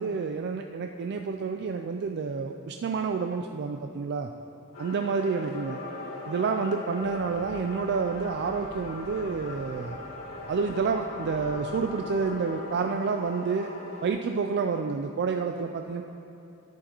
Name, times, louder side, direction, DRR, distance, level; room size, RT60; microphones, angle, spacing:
voice 1, 0.0-4.3 4.8-5.8 6.3-10.0 10.5-13.7 14.0-16.0, right 5 dB, 50° right, 5 dB, 0.3 m, -29 dB
sound 1, 4.7-14.1, left 2 dB, 70° left, 1.7 m, -39 dB
sound 2, 7.0-12.3, right 1 dB, 30° right, 0.7 m, -51 dB
14.0 x 10.0 x 3.0 m, 2.7 s
head